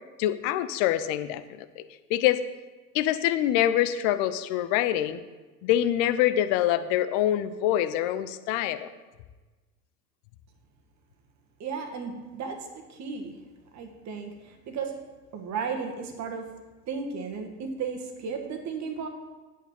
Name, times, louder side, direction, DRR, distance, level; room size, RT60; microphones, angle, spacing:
voice 1, 0.2-1.8 2.1-2.4 2.9-5.2 5.6-8.9, left 12 dB, 40° left, 12 dB, 0.7 m, -25 dB
voice 2, 11.6-13.3 13.7-14.9 15.3-16.5 16.9-19.1, right 5 dB, 35° right, 5 dB, 1.6 m, -34 dB
9.9 x 8.2 x 4.4 m, 1.2 s
figure-of-eight pair, 75°, 49 cm